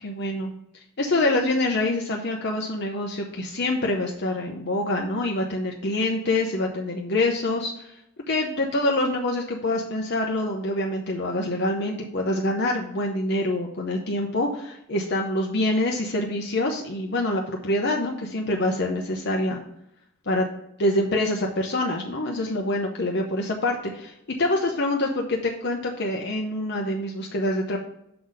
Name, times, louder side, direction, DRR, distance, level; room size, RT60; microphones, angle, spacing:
voice 1, 0.0-7.9 8.3-19.6 20.3-20.4 20.8-24.1 24.4-27.8, left 1 dB, 55° left, 0 dB, 0.8 m, -26 dB
6.8 x 4.0 x 6.5 m, 0.79 s
head